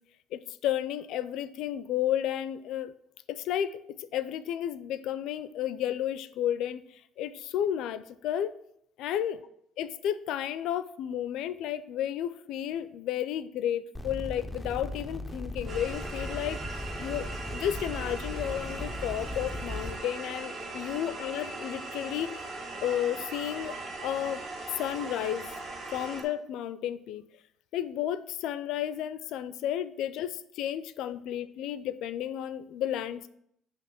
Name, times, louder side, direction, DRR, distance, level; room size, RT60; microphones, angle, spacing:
voice 1, 0.3-2.9 3.3-8.5 9.0-9.4 9.8-16.6 17.0-22.5 22.8-25.5 25.9-27.2 27.7-33.3, left 10 dB, 65° left, 14 dB, 0.4 m, -32 dB
sound 1, 13.9-20.0, left 1 dB, ahead, 0.4 m, -38 dB
sound 2, 15.7-26.2, right 2 dB, 40° right, 1.7 m, -39 dB
7.5 x 2.9 x 5.7 m, 0.72 s
cardioid pair, 165°, 0 cm